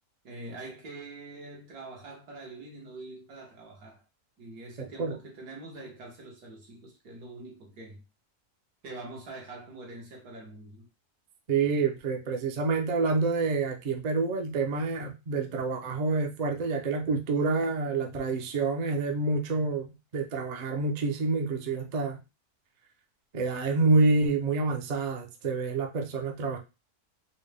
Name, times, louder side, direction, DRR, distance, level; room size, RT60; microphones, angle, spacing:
voice 1, 0.2-4.0 4.4-8.0 8.8-10.9, right 2 dB, 85° right, 1.8 m, -44 dB
voice 2, 11.5-22.2 23.3-26.6, right 3 dB, 55° right, 0.4 m, -27 dB
4.3 x 2.2 x 3.3 m
omnidirectional pair, 1.6 m